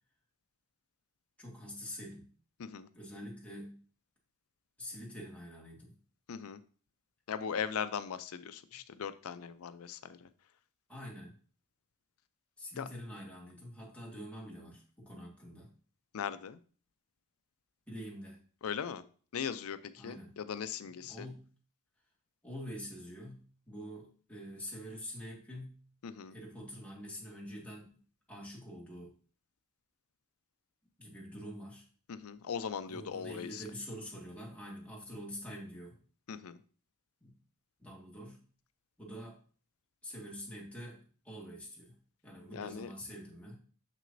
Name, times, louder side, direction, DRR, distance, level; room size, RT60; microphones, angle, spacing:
voice 1, 1.4-2.3 2.9-3.8 4.8-6.0 10.9-11.4 12.6-15.7 17.9-18.4 20.0-20.3 21.1-21.5 22.4-25.9 26.3-27.9 28.3-29.1 31.0-31.8 32.9-36.0 37.2-37.4 37.8-38.4 39.0-39.4 40.0-42.0 42.2-43.6, equal, 5° left, -3 dB, 1.8 m, -46 dB
voice 2, 6.3-6.6 7.3-10.3 12.8-12.9 16.1-16.6 18.6-19.0 19.3-21.3 26.0-26.4 32.1-33.6 36.3-36.6 42.5-42.9, left 7 dB, 80° left, 13 dB, 0.5 m, -39 dB
6.7 x 6.1 x 2.6 m, 0.41 s
head